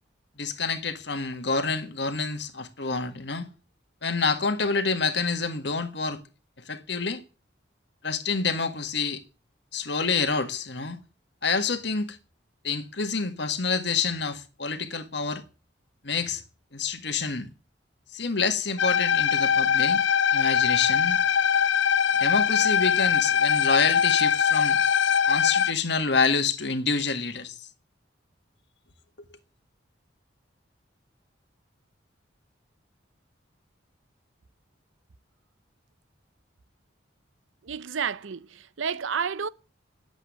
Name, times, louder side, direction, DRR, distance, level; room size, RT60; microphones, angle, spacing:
voice 1, 0.4-3.5 4.0-6.2 6.6-7.2 8.0-9.2 9.7-11.0 11.4-12.2 12.6-15.4 16.0-16.4 16.7-17.5 18.1-20.0 20.3-21.2 22.2-24.8 25.3-27.7, left 4 dB, 65° left, 1.6 m, -27 dB
sound 1, 18.8-25.7, left 7 dB, 80° left, 0.6 m, -22 dB
voice 2, 37.6-39.5, right 6 dB, 90° right, 0.6 m, -30 dB
10.5 x 8.1 x 9.3 m
head